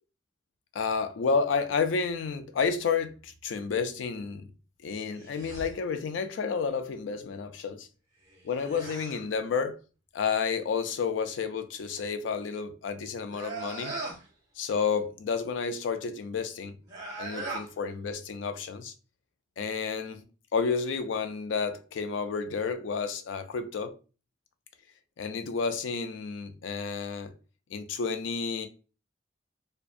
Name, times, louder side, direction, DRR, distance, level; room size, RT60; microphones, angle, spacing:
voice 1, 0.7-4.5 4.8-7.9 8.4-9.7 10.1-14.0 14.6-16.8 17.2-18.9 19.6-20.2 20.5-23.9 25.2-27.3 27.7-28.7, left 5 dB, 90° left, 0.4 m, -30 dB
sound 1, 5.2-5.7 8.3-9.3 13.3-14.3 16.8-17.7, right 3 dB, 20° right, 0.7 m, -39 dB
2.5 x 2.2 x 2.4 m
head